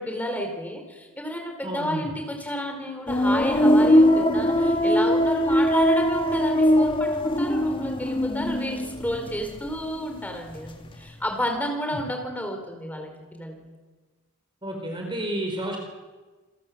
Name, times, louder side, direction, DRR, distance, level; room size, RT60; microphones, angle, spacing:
voice 1, 0.0-13.7, equal, 5° left, 3 dB, 4.8 m, -31 dB
voice 2, 1.6-2.1 14.6-15.8, right 1 dB, 20° right, 2 dB, 4.6 m, -30 dB
sound 1, 3.1-9.9 10.2-11.0, equal, 25° left, 1.6 m, -21 dB
29.0 x 22.0 x 7.8 m, 1.3 s
head